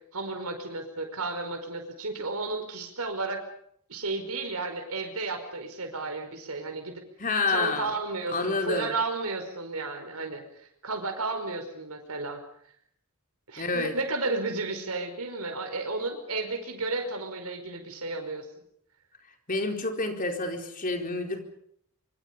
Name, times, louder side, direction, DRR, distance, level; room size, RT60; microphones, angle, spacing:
voice 1, 0.1-3.4 3.9-7.0 7.5-10.4 10.8-12.4 13.5-18.4, right 3 dB, 80° right, 5 dB, 5.1 m, -33 dB
voice 2, 7.2-7.9 8.3-8.9 13.6-13.9 19.5-21.4, left 3 dB, 40° left, 4 dB, 4.3 m, -28 dB
26.0 x 25.0 x 5.4 m, 0.67 s
head